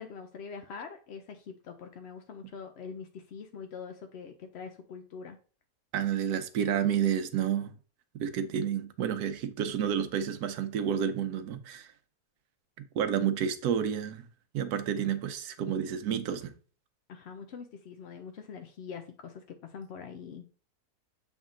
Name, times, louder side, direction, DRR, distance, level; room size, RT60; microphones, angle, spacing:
voice 1, 0.0-5.4 17.1-20.4, left 6 dB, 65° left, 0.7 m, -44 dB
voice 2, 5.9-7.7 8.1-11.9 12.9-14.2 14.5-16.5, right 8 dB, 80° right, 1.2 m, -30 dB
7.2 x 3.6 x 3.7 m
omnidirectional pair, 1.6 m